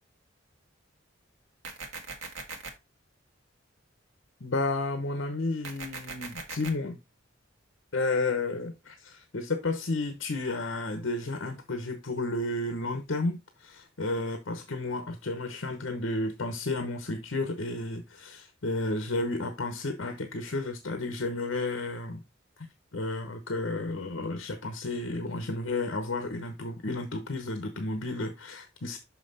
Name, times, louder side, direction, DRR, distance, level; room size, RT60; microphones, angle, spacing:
sound 1, 1.6-2.7 5.6-6.7, right 4 dB, 85° right, 1.7 m, -39 dB
voice 1, 4.4-7.0 7.9-22.2 22.9-29.0, left 2 dB, 75° left, 1.0 m, -32 dB
6.1 x 5.7 x 4.0 m
head